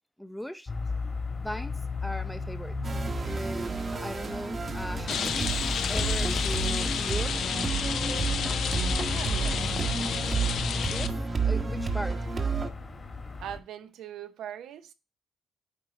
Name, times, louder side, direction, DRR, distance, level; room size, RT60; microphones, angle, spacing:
voice 1, 0.2-0.7 1.4-2.7 3.3-7.4 10.9-12.2, equal, 5° left, 0.6 m, -39 dB
sound 1, 0.7-13.6, left 3 dB, 30° left, 1.5 m, -35 dB
sound 2, 2.8-12.7, right 5 dB, 35° right, 1.0 m, -31 dB
Rain, 5.1-11.1, left 7 dB, 70° left, 0.7 m, -31 dB
voice 2, 9.0-9.5 13.4-14.9, right 10 dB, 80° right, 0.7 m, -41 dB
8.7 x 3.1 x 5.7 m
cardioid pair, 90°, 0 cm